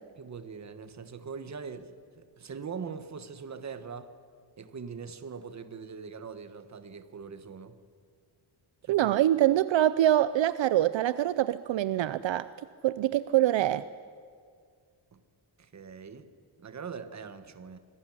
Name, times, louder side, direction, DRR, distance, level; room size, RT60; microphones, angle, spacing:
voice 1, 0.2-4.1 4.6-7.8 8.8-9.2 15.1-15.2 15.6-16.3 16.6-17.8, right 6 dB, 35° right, 11 dB, 1.4 m, -42 dB
voice 2, 8.9-12.5 12.8-13.9, right 13 dB, 65° right, 15 dB, 0.7 m, -24 dB
27.5 x 19.5 x 10.0 m, 2.1 s
wide cardioid pair, 175°, 47 cm